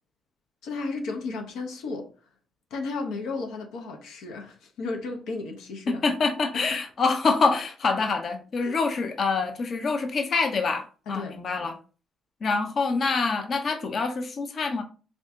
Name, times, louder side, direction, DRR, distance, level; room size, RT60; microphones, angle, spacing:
voice 1, 0.6-2.1 2.7-6.1 6.5-6.8 8.6-8.9 11.1-11.7, left 3 dB, 90° left, 0.7 m, -34 dB
voice 2, 5.9-11.8 12.4-14.8, left 4 dB, 50° left, 0.6 m, -26 dB
3.6 x 2.6 x 3.5 m
cardioid pair, 90°, 0 cm